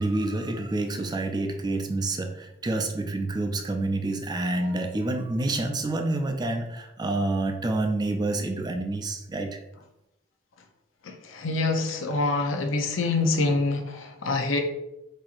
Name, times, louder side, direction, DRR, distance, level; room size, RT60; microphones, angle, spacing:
voice 1, 0.0-9.6, right 2 dB, 20° right, 4 dB, 0.4 m, -28 dB
voice 2, 11.0-14.6, left 3 dB, 85° left, 4 dB, 0.6 m, -26 dB
4.2 x 2.7 x 2.4 m, 0.91 s
head